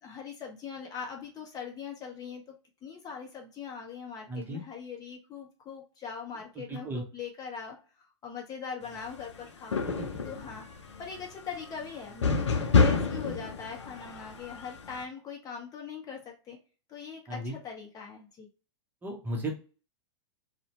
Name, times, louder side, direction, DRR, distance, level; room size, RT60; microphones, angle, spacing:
voice 1, 0.0-2.4 2.8-9.8 10.2-10.7 11.0-16.6 16.9-18.5, left 6 dB, 25° left, 1 dB, 0.6 m, -41 dB
voice 2, 4.3-4.6 6.6-7.0 9.8-10.2 17.3-17.5 19.0-19.5, right 1 dB, 15° right, 0 dB, 0.7 m, -35 dB
sound 1, 8.9-9.4 9.7-15.0, left 4 dB, 85° left, 0.5 m, -28 dB
2.6 x 2.1 x 2.9 m, 0.35 s
hypercardioid pair, 105°, 15 cm